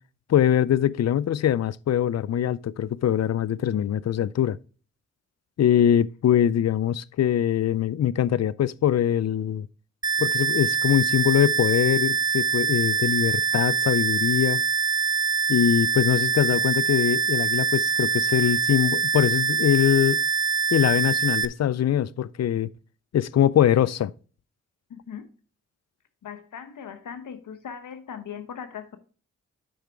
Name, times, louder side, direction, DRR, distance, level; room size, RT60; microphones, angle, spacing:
voice 1, 0.3-4.6 5.6-9.7 10.2-14.6 15.5-20.2 20.7-22.7 23.1-24.1, left 10 dB, 60° left, 0.5 m, -22 dB
sound 1, 10.0-21.4, right 6 dB, 15° right, 0.6 m, -24 dB
voice 2, 24.9-25.3 26.2-29.0, left 7 dB, 90° left, 1.0 m, -39 dB
8.6 x 5.9 x 3.5 m
cardioid pair, 45°, 30 cm